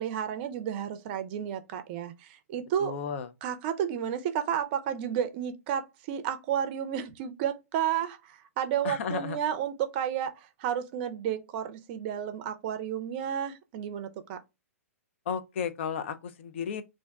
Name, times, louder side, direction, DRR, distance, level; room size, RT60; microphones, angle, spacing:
voice 1, 0.0-3.1 3.4-14.4, right 9 dB, 40° right, 0.5 m, -32 dB
voice 2, 2.8-3.3 8.8-9.4 15.3-16.8, left 6 dB, 50° left, 0.4 m, -33 dB
2.5 x 2.2 x 3.5 m
figure-of-eight pair, 110°, 8 cm